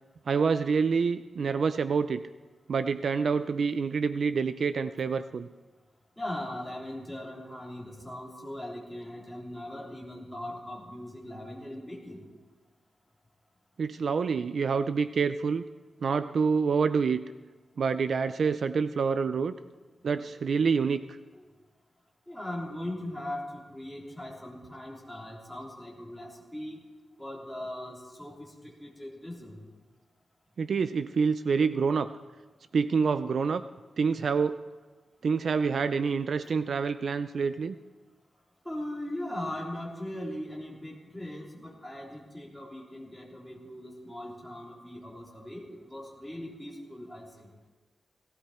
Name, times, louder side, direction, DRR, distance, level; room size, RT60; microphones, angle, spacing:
voice 1, 0.3-2.2 2.7-5.5 13.8-15.6 16.0-17.2 17.8-19.5 20.0-21.0 30.6-32.1 32.7-33.6 34.0-34.6 35.2-37.7, right 5 dB, 55° right, 11 dB, 0.4 m, -27 dB
voice 2, 6.2-12.3 21.3-21.4 22.3-26.8 27.2-29.6 36.4-36.5 38.6-47.5, left 1 dB, 5° left, -4 dB, 3.5 m, -39 dB
18.0 x 16.0 x 4.3 m, 1.3 s
wide cardioid pair, 180°, 0 cm